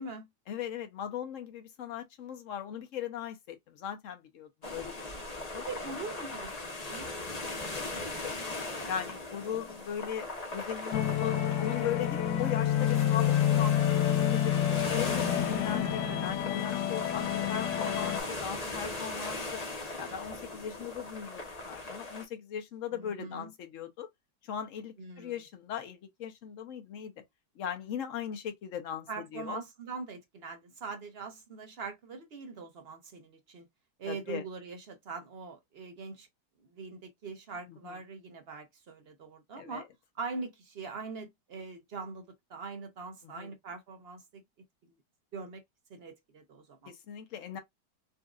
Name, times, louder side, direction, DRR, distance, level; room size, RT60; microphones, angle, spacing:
voice 1, 0.5-5.7 7.7-19.6 20.0-24.1 24.4-27.1 27.6-29.6 34.0-34.4 37.7-38.0 39.6-39.8 43.3-43.5 46.9-47.6, left 9 dB, 55° left, 0.9 m, -39 dB
sound 1, 4.6-22.2, left 2 dB, 30° left, 0.8 m, -39 dB
voice 2, 5.7-7.1 7.4-7.8 9.5-9.8 15.8-16.4 22.9-23.5 25.0-25.4 29.1-33.7 34.0-36.3 36.6-39.9 40.1-44.4 45.3-45.6 45.9-46.9, right 4 dB, 55° right, 0.6 m, -42 dB
sound 2, 10.9-18.2, left 10 dB, 75° left, 1.3 m, -28 dB
4.0 x 2.5 x 2.3 m
omnidirectional pair, 1.9 m